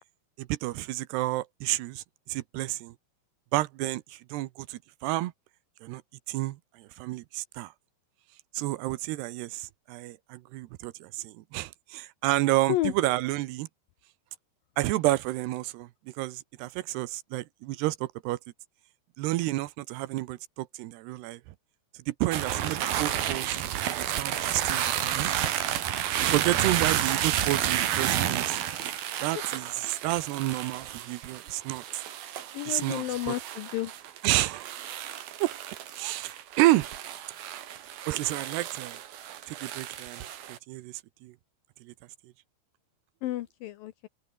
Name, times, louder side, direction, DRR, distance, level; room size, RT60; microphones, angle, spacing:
voice 1, 0.4-2.9 3.5-5.3 5.8-6.0 6.3-7.7 8.5-13.7 14.8-15.9 16.2-18.4 19.2-21.4 22.1-25.3 26.2-28.6 29.2-32.0 32.7-33.4 34.2-34.7 35.4-35.5 36.0-36.9 38.1-39.0 39.5-40.2 40.5-41.3 41.8-41.9, right 17 dB, 85° right, 2.8 m, -30 dB
sound 1, 22.3-40.6, right 11 dB, 65° right, 3.5 m, -31 dB
voice 2, 32.5-33.9 43.2-44.1, left 15 dB, 75° left, 2.2 m, -31 dB
open air
omnidirectional pair, 4.9 m